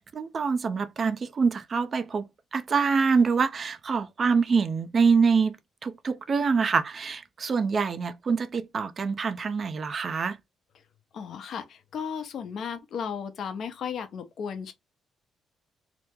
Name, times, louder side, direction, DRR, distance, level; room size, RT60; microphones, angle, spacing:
voice 1, 0.1-10.4, right 5 dB, 45° right, 0.5 m, -25 dB
voice 2, 11.1-14.7, left 7 dB, 65° left, 0.8 m, -35 dB
2.9 x 2.1 x 3.5 m
cardioid pair, 90°, 0 cm